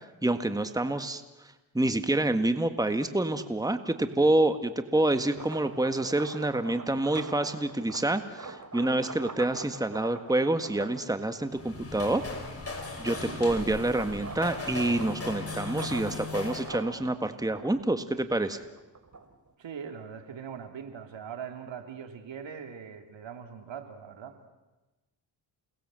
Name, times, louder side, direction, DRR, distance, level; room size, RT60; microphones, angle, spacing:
voice 1, 0.2-1.2 1.7-12.2 13.0-18.6, right 2 dB, 10° right, 9 dB, 1.7 m, -27 dB
sound 1, 5.2-11.8 12.3-19.5, right 4 dB, 40° right, 3.1 m, -44 dB
sound 2, 11.4-16.8, left 3 dB, 30° left, 6.2 m, -37 dB
voice 2, 19.6-24.5, right 7 dB, 70° right, 6 dB, 3.2 m, -41 dB
29.0 x 19.5 x 7.8 m, 1.1 s
cardioid pair, 65°, 46 cm